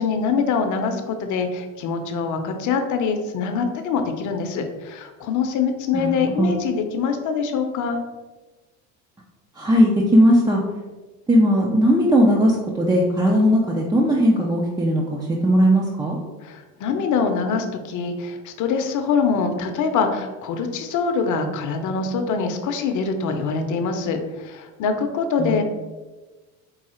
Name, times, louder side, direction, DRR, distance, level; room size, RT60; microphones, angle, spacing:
voice 1, 0.0-8.0 16.4-25.6, left 5 dB, 50° left, 6 dB, 0.7 m, -24 dB
voice 2, 5.9-6.5 9.6-10.6 11.3-16.2 25.4-25.6, equal, 10° right, -2 dB, 0.3 m, -18 dB
4.7 x 2.3 x 4.2 m, 1.2 s
cardioid pair, 130°, 39 cm